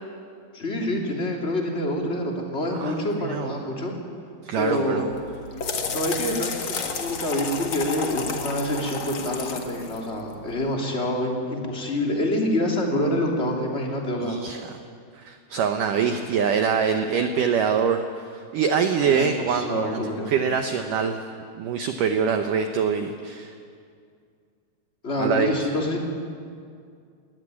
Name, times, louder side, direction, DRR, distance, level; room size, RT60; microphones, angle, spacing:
voice 1, 0.5-3.9 4.6-5.0 5.9-14.4 19.0-20.3 25.0-26.0, left 1 dB, 20° left, 0 dB, 2.4 m, -27 dB
voice 2, 2.8-3.5 4.5-5.1 14.2-14.6 15.2-21.2 21.6-23.5 25.2-25.5, right 6 dB, 85° right, 6 dB, 1.8 m, -24 dB
sound 1, 5.1-10.7, left 5 dB, 75° left, 1.1 m, -32 dB
20.0 x 18.5 x 9.7 m, 2.3 s
omnidirectional pair, 5.1 m